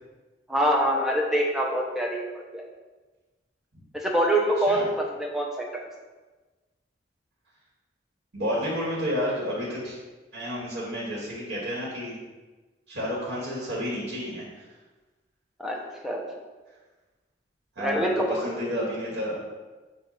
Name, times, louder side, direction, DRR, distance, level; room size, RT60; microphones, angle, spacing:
voice 1, 0.5-2.3 2.5-2.6 3.9-4.9 5.2-5.6 15.6-15.8 16.0-16.2 17.8-18.5, right 1 dB, ahead, -1 dB, 0.8 m, -24 dB
voice 2, 8.3-10.0 10.3-12.2 12.9-14.6 17.8-19.4, equal, 75° right, -6 dB, 1.9 m, -31 dB
7.7 x 2.6 x 5.7 m, 1.2 s
head